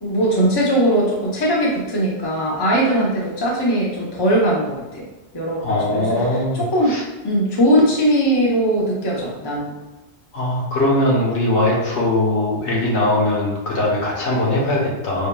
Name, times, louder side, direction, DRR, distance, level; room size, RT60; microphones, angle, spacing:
voice 1, 0.0-5.0 5.3-6.0 6.5-7.0 7.2-9.7, equal, 25° left, -4 dB, 0.7 m, -19 dB
voice 2, 5.6-7.0 10.3-15.3, left 1 dB, 80° left, -4 dB, 1.3 m, -20 dB
4.9 x 2.8 x 2.2 m, 1.1 s
omnidirectional pair, 1.2 m